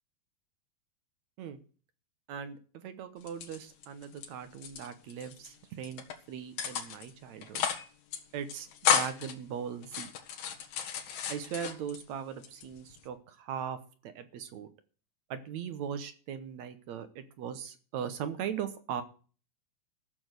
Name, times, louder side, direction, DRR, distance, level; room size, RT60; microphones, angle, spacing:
voice 1, 2.3-7.6 8.3-10.1 11.3-14.7 15.3-19.0, right 8 dB, 65° right, 11 dB, 2.0 m, -39 dB
sound 1, 3.2-4.3 4.5-5.5 5.8-6.1 6.6-7.1 7.4-7.9 8.1-8.2 8.5-9.3 9.8-12.0 12.4-13.1, left 8 dB, 85° left, 3.4 m, -32 dB
13.5 x 7.0 x 8.1 m, 0.40 s
omnidirectional pair, 4.0 m